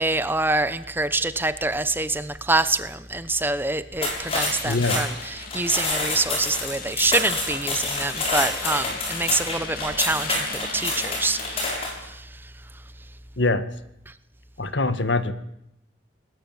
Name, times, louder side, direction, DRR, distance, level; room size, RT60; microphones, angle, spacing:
voice 1, 0.0-10.4 10.7-12.3, right 2 dB, 10° right, 13 dB, 1.0 m, -26 dB
sound 1, 3.9-12.0, left 2 dB, 30° left, 7.2 m, -28 dB
sound 2, 4.2-11.7, left 4 dB, 50° left, 3.6 m, -37 dB
voice 2, 4.6-5.0 13.4-13.6 14.6-15.3, left 2 dB, 70° left, 12 dB, 1.8 m, -23 dB
29.0 x 20.5 x 9.1 m, 0.83 s
head